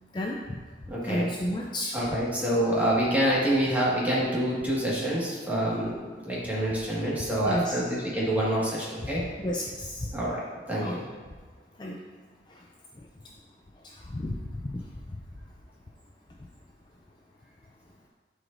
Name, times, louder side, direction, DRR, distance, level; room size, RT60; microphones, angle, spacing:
voice 1, 0.1-0.6 1.0-2.0 7.4-7.8 9.4-10.1 10.8-11.0 11.8-12.0 12.5-12.7 13.0-13.1 13.8-14.4 14.6-14.8 15.1-15.2, left 1 dB, 25° left, -1 dB, 0.4 m, -32 dB
voice 2, 0.9-1.3 1.9-9.2 10.1-11.1, right 1 dB, 10° right, -7 dB, 1.8 m, -27 dB
11.0 x 4.8 x 2.6 m, 1.5 s
head